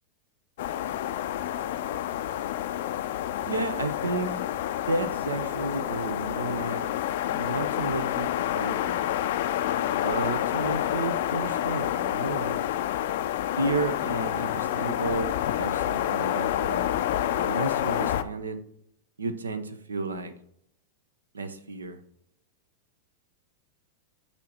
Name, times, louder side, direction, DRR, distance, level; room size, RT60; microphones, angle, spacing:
sound 1, 0.6-18.2, left 12 dB, 65° left, 0.4 m, -28 dB
voice 1, 3.5-6.8 7.2-9.0 9.9-12.6 13.6-18.6 19.2-20.3 21.3-22.0, right 3 dB, 90° right, 10 dB, 0.6 m, -32 dB
8.1 x 2.8 x 4.3 m, 0.72 s
hypercardioid pair, 100°, 0 cm